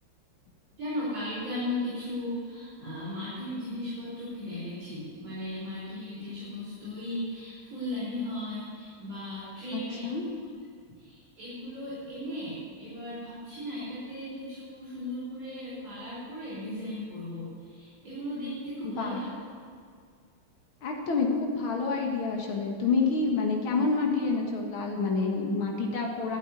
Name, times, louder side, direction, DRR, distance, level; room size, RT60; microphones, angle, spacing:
voice 1, 0.8-10.0 11.0-19.3, left 1 dB, 50° right, -10 dB, 5.5 m, -36 dB
voice 2, 9.7-10.2 18.8-19.2 20.8-26.4, left 4 dB, 85° left, 0 dB, 2.5 m, -28 dB
13.0 x 9.1 x 9.8 m, 2.1 s
omnidirectional pair, 2.2 m